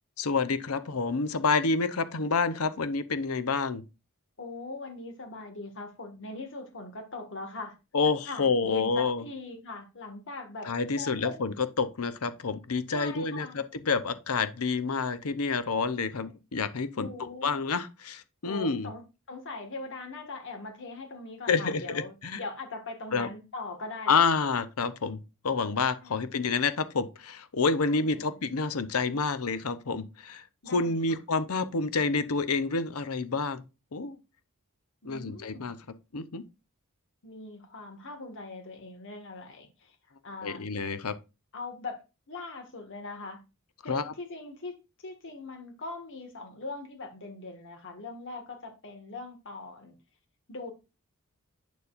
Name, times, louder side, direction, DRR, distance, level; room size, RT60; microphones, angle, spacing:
voice 1, 0.2-3.8 7.9-9.2 10.6-17.1 17.4-18.9 21.5-22.4 23.1-23.3 24.1-25.2 25.4-33.6 33.9-34.2 35.0-35.7 36.1-36.4 40.4-41.1 43.9-44.1, left 4 dB, 85° left, 0.8 m, -28 dB
voice 2, 4.4-7.8 8.3-11.4 12.9-13.6 16.1-16.2 17.0-17.6 18.4-19.0 19.3-24.3 26.0-26.3 27.9-28.3 30.6-31.2 35.0-35.7 37.2-40.0 40.2-40.6 41.5-43.4 43.8-44.8 45.0-50.0 50.5-50.7, left 3 dB, 60° left, 1.9 m, -41 dB
8.3 x 7.0 x 2.5 m
head